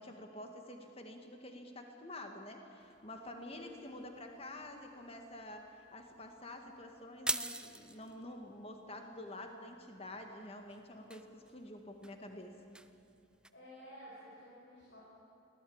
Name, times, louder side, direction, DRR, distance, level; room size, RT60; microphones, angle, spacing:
voice 1, 0.0-12.6, left 1 dB, 30° left, 4 dB, 2.0 m, -48 dB
sound 1, 2.8-13.5, right 2 dB, 5° right, 0.4 m, -47 dB
voice 2, 13.5-15.0, equal, 55° left, -6 dB, 5.4 m, -53 dB
23.5 x 17.0 x 8.9 m, 2.8 s
head